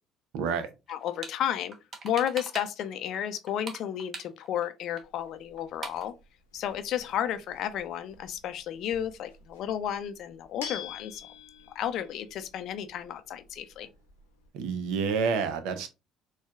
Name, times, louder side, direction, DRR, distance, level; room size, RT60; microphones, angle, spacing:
voice 1, 0.3-0.7 14.5-15.9, right 6 dB, 70° right, 0.6 m, -28 dB
voice 2, 0.9-1.7 2.0-6.1 6.5-11.3 11.7-13.9, left 10 dB, 60° left, 0.4 m, -32 dB
sound 1, 0.9-1.4 1.7-2.9 3.1-4.7 5.0-5.1 5.3-5.4 5.6-6.1, right 4 dB, 45° right, 0.9 m, -41 dB
sound 2, 5.0-14.5, left 6 dB, 85° left, 0.8 m, -48 dB
4.4 x 2.3 x 2.3 m
hypercardioid pair, 60°, 0 cm